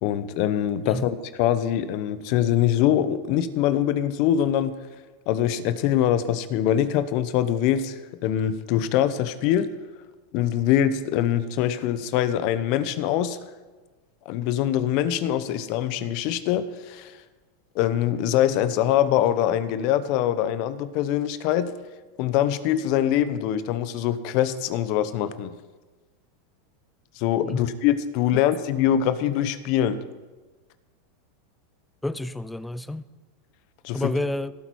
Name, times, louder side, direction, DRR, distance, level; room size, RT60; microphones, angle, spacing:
voice 1, 0.0-4.7 5.3-9.7 10.3-13.4 14.3-17.1 17.7-21.7 22.2-25.5 27.2-30.0 33.8-34.1, left 11 dB, 55° left, 0.8 m, -23 dB
voice 2, 32.0-33.1 33.9-34.5, left 1 dB, 5° left, 0.5 m, -29 dB
16.5 x 8.3 x 4.7 m
supercardioid pair, 120°, 0 cm